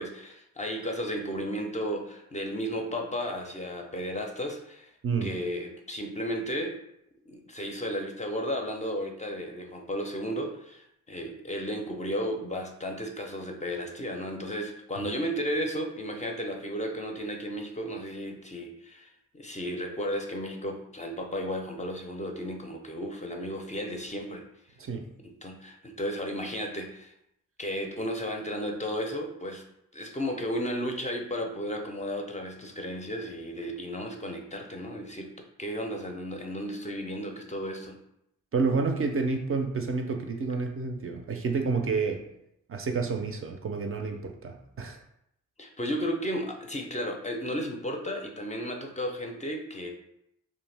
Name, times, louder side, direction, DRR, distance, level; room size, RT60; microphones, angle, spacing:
voice 1, 0.0-4.9 5.2-6.8 7.3-24.4 25.2-27.1 27.6-29.6 29.9-35.3 35.6-38.0 45.6-49.9, equal, 25° left, 2 dB, 0.4 m, -34 dB
voice 2, 5.0-5.3 15.0-15.1 24.8-25.1 38.5-42.2 42.7-45.0, right 4 dB, 45° right, 4 dB, 0.4 m, -29 dB
2.4 x 2.1 x 3.2 m, 0.78 s
cardioid pair, 50°, 32 cm